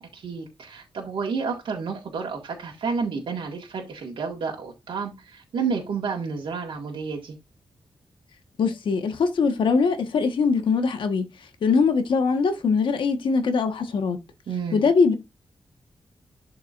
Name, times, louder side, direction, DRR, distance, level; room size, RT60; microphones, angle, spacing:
voice 1, 0.0-7.4 14.5-14.8, right 5 dB, 80° right, 1.8 m, -30 dB
voice 2, 8.6-11.2 11.6-14.2 14.7-15.1, left 5 dB, 75° left, 1.4 m, -22 dB
11.5 x 4.7 x 2.5 m
wide cardioid pair, 165°, 8 cm